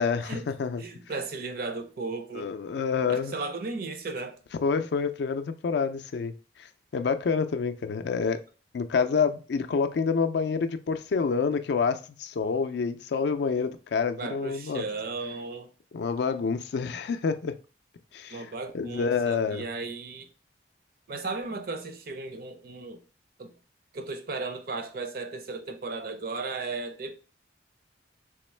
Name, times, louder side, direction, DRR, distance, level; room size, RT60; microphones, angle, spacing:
voice 1, 0.0-0.8 2.3-3.3 4.6-8.4 8.7-14.8 15.9-17.5 18.1-19.6, left 5 dB, 65° left, 0.3 m, -28 dB
voice 2, 0.8-2.5 3.1-4.4 14.2-15.7 18.3-20.3 21.1-23.0 23.4-23.5 23.9-27.2, right 3 dB, 50° right, 0.5 m, -35 dB
3.5 x 3.0 x 3.2 m
head